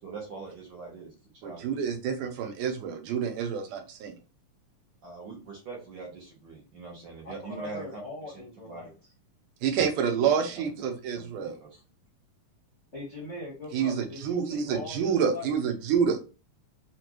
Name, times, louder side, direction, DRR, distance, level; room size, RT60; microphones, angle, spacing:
voice 1, 0.0-2.0 5.0-8.3 8.6-8.9 10.5-10.7 11.1-11.8, right 4 dB, 65° right, -1 dB, 1.2 m, -43 dB
voice 2, 1.4-4.1 9.6-11.5 13.7-16.2, right 7 dB, 85° right, 5 dB, 2.3 m, -28 dB
voice 3, 7.2-8.9 12.9-15.5, left 2 dB, 50° left, -5 dB, 0.8 m, -41 dB
5.8 x 2.5 x 2.9 m, 0.33 s
omnidirectional pair, 3.5 m